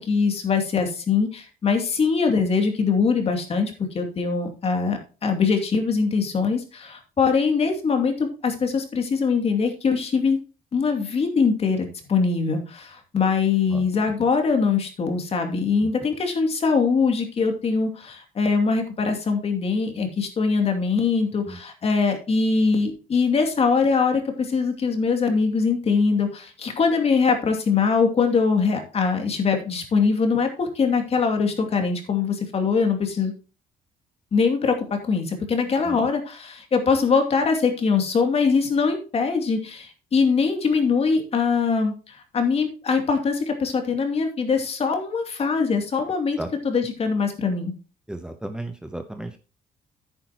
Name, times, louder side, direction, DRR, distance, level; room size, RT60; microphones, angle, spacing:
voice 1, 0.0-10.4 10.7-33.3 34.3-46.4 46.6-47.7, left 5 dB, 40° left, 4 dB, 2.6 m, -22 dB
voice 2, 48.1-49.4, right 1 dB, 5° right, 6 dB, 0.9 m, -34 dB
10.5 x 9.4 x 2.9 m, 0.34 s
cardioid pair, 125°, 15 cm